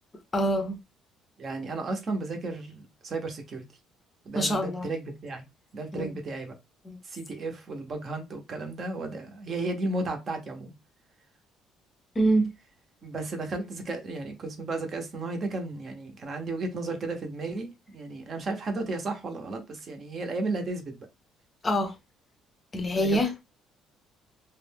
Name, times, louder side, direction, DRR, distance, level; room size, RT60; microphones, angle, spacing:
voice 1, 0.3-0.8 4.4-4.9 5.9-6.1 6.9-7.0 12.2-12.5 21.6-21.9 22.7-23.4, right 1 dB, 25° left, 0.6 m, -25 dB
voice 2, 1.4-3.6 4.2-5.4 5.7-6.5 7.0-10.7 13.0-21.1 22.9-23.2, right 2 dB, 40° right, 0.7 m, -34 dB
2.5 x 2.1 x 3.3 m
cardioid pair, 120°, 0 cm